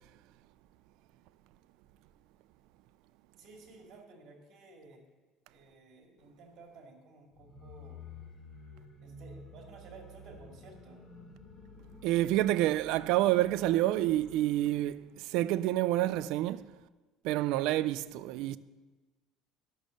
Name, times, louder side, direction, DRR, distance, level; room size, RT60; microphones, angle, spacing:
voice 1, 3.4-5.0 5.5-8.0 9.0-11.0, right 3 dB, 45° right, 2.4 m, -54 dB
sound 1, 7.3-15.0, left 2 dB, 20° left, 1.9 m, -51 dB
voice 2, 12.0-16.6 17.2-18.6, right 15 dB, 70° right, 0.4 m, -28 dB
11.5 x 6.3 x 6.4 m
cardioid pair, 145°, 0 cm